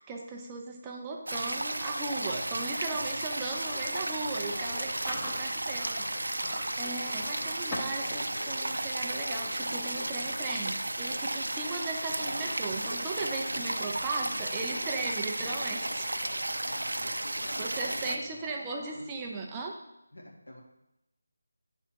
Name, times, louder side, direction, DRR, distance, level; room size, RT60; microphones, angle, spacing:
voice 1, 0.0-16.1 17.6-19.8, right 3 dB, 15° right, 0 dB, 0.5 m, -37 dB
sound 1, 1.3-18.2, right 1 dB, 85° right, 0.4 m, -34 dB
voice 2, 2.2-3.2 7.2-7.5 16.6-18.4 18.9-19.0 20.1-20.6, left 1 dB, 85° left, -2 dB, 1.8 m, -49 dB
sound 2, 2.7-2.8 3.6-19.0, left 2 dB, 50° left, 0.7 m, -46 dB
Chewing mastication, 4.8-8.1 8.4-8.7 9.1-9.4 10.1-10.2 10.4-10.8 11.2-11.3 12.7-13.3, left 1 dB, 15° left, 0.8 m, -42 dB
7.6 x 3.5 x 4.4 m, 0.86 s
figure-of-eight pair, 170°, 0 cm